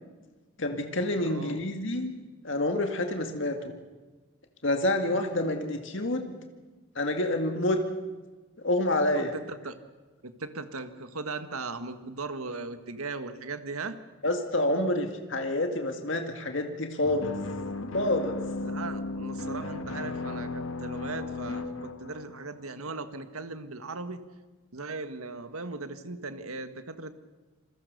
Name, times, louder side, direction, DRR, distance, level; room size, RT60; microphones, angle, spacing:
voice 1, 0.6-2.1 2.4-3.7 4.6-6.4 7.0-7.8 8.6-9.3 14.2-17.3 17.9-18.4, left 1 dB, 60° left, 5 dB, 2.2 m, -28 dB
voice 2, 1.2-1.6 9.1-9.7 10.2-14.0 18.6-24.2 24.7-27.1, right 3 dB, 85° right, 9 dB, 1.7 m, -38 dB
sound 1, 17.0-22.8, left 2 dB, 75° left, 1.9 m, -35 dB
27.5 x 22.0 x 6.8 m, 1.3 s
head